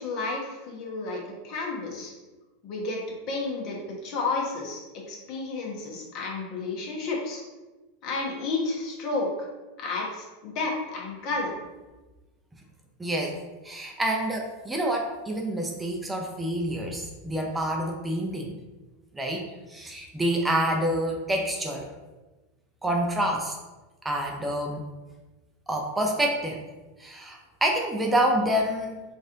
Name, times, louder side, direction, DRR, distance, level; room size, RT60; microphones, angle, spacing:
voice 1, 0.0-2.1 2.6-3.0 3.3-3.8 4.0-4.8 5.1-7.4 8.0-9.5 9.8-11.5, left 3 dB, 50° left, -2 dB, 1.2 m, -31 dB
voice 2, 13.0-13.4 13.6-18.6 19.1-21.9 22.8-23.6 24.0-24.9 25.7-26.6 27.0-29.0, right 1 dB, 10° right, 1 dB, 0.5 m, -27 dB
4.0 x 2.5 x 3.7 m, 1.2 s
hypercardioid pair, 100°, 0 cm